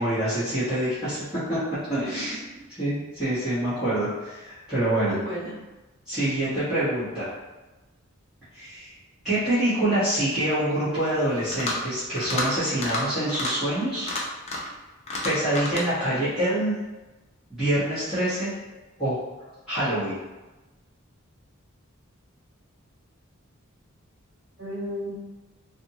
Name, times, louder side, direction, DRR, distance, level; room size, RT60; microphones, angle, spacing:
voice 1, 0.0-1.6 1.9-2.4 2.7-5.1 6.1-7.3 8.5-8.9 9.2-14.1 15.2-16.8 17.5-18.5 19.0-19.2 19.7-20.2, right 1 dB, 5° right, -18 dB, 1.1 m, -26 dB
voice 2, 2.0-2.4 5.0-5.6 24.6-25.1, equal, 65° right, -7 dB, 1.3 m, -34 dB
sound 1, 11.4-11.9 12.2-12.5 12.8-13.0 13.3-13.5 14.0-14.7 15.1-15.9, left 2 dB, 30° left, 0.5 m, -30 dB
2.6 x 2.5 x 2.7 m, 1.1 s
head